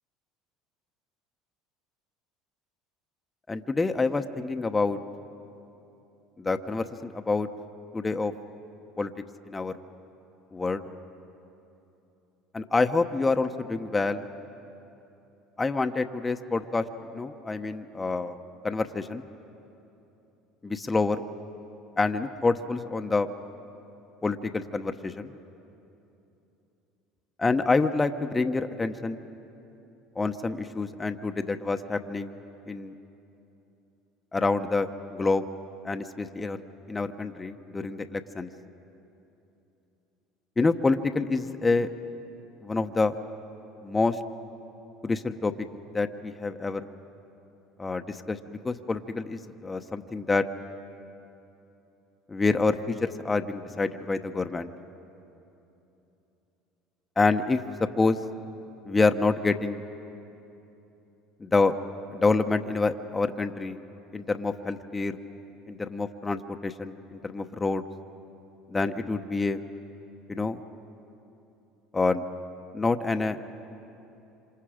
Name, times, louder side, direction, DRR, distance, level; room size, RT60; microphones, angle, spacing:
voice 1, 3.5-5.0 6.4-7.5 7.9-8.3 9.0-9.1 9.5-9.7 10.5-10.8 12.5-14.3 15.6-16.8 17.1-18.4 18.6-19.2 20.6-21.2 22.0-23.3 24.2-25.3 27.4-29.2 30.2-32.3 32.7-32.9 34.3-35.4 35.8-36.6 36.9-38.5 40.6-41.9 42.6-43.2 43.8-44.2 45.0-45.5 45.9-46.9 47.8-50.4 52.3-54.7 57.2-57.6 58.0-58.2 58.8-59.8 61.4-61.7 62.1-63.8 64.1-65.2 65.7-67.8 68.7-69.6 70.3-70.6 71.9-72.2 72.7-73.4, left 3 dB, 20° left, 7 dB, 0.9 m, -27 dB
26.5 x 26.5 x 5.0 m, 3.0 s
hypercardioid pair, 80°, 0 cm